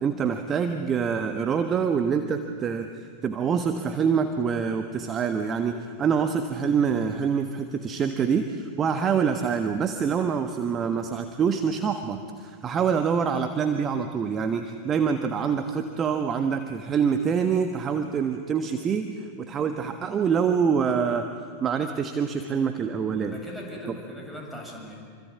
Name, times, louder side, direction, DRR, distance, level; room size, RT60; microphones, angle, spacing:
voice 1, 0.0-21.3 21.6-23.4, right 6 dB, 25° right, 7 dB, 1.4 m, -26 dB
voice 2, 23.3-25.0, equal, 5° right, 0 dB, 7.6 m, -39 dB
26.5 x 25.5 x 8.6 m, 2.1 s
figure-of-eight pair, 90°, 0 cm